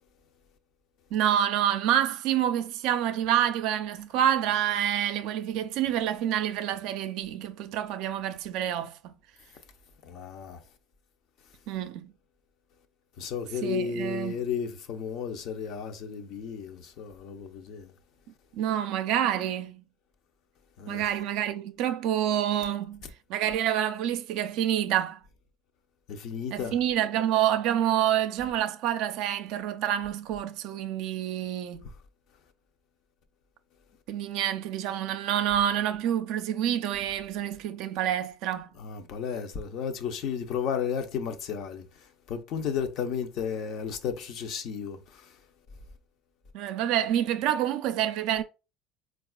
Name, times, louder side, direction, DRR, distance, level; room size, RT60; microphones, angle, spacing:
voice 1, 1.1-9.1 11.7-12.1 13.6-14.4 18.5-19.8 20.9-25.2 26.5-31.9 34.1-38.7 46.5-48.4, right 10 dB, 70° right, 0.4 m, -27 dB
voice 2, 10.0-10.6 13.2-17.9 20.8-21.0 26.1-26.8 38.8-41.8 42.3-45.2, left 7 dB, 60° left, 0.6 m, -33 dB
4.0 x 2.3 x 2.3 m
supercardioid pair, 115°, 0 cm